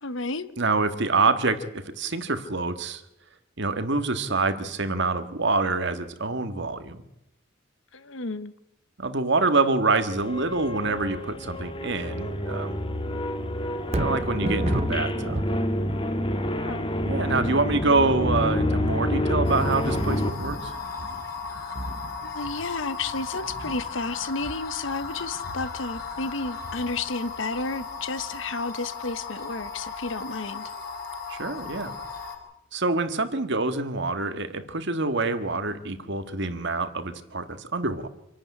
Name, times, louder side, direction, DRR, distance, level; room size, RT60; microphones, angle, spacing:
voice 1, 0.0-0.5 7.9-8.5 16.6-16.9 22.2-30.7, left 3 dB, 65° left, 1.1 m, -32 dB
voice 2, 0.6-3.0 3.6-7.0 9.0-12.7 13.9-15.4 17.0-20.7 31.3-31.9 32.7-38.1, right 3 dB, 60° right, 1.7 m, -26 dB
sound 1, 10.2-20.3, left 1 dB, 25° left, 1.6 m, -28 dB
Thunder, 13.8-28.0 28.5-28.6, right 2 dB, 30° right, 0.8 m, -37 dB
sound 2, 19.4-32.4, left 4 dB, 50° left, 5.2 m, -36 dB
26.5 x 12.0 x 9.6 m
head